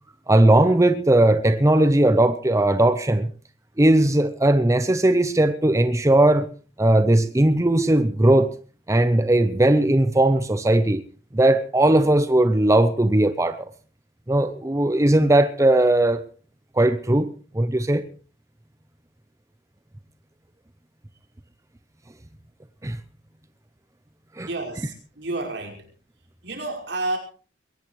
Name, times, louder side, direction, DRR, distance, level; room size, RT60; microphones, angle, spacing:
voice 1, 0.3-3.3 3.8-6.5 6.8-8.5 8.9-11.0 11.3-13.7 14.3-16.2 16.8-17.3 17.5-18.0 22.8-23.0 24.4-24.5, right 1 dB, 15° right, 0.8 m, -18 dB
voice 2, 24.5-25.9 26.4-27.2, right 2 dB, 75° right, 5.3 m, -30 dB
21.5 x 19.0 x 3.2 m
head